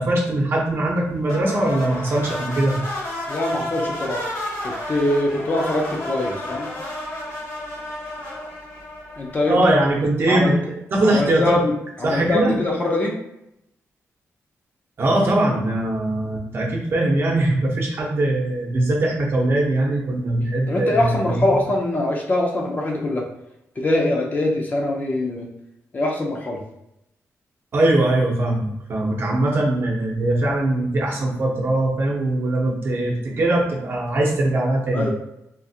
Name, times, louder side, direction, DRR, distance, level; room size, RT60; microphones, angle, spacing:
voice 1, 0.0-2.8 9.5-10.6 10.9-11.6 12.0-12.5 15.0-21.4 27.7-35.1, right 1 dB, 50° right, -1 dB, 0.8 m, -21 dB
sound 1, 1.3-9.7, left 1 dB, 90° left, 1.2 m, -31 dB
voice 2, 3.3-4.2 4.6-6.7 9.2-9.8 10.3-10.5 11.1-11.7 12.0-13.2 20.7-23.3 23.8-25.5 25.9-26.6 34.9-35.1, left 1 dB, 30° left, 0 dB, 0.5 m, -23 dB
3.7 x 2.5 x 2.7 m, 0.84 s
wide cardioid pair, 165°, 5 cm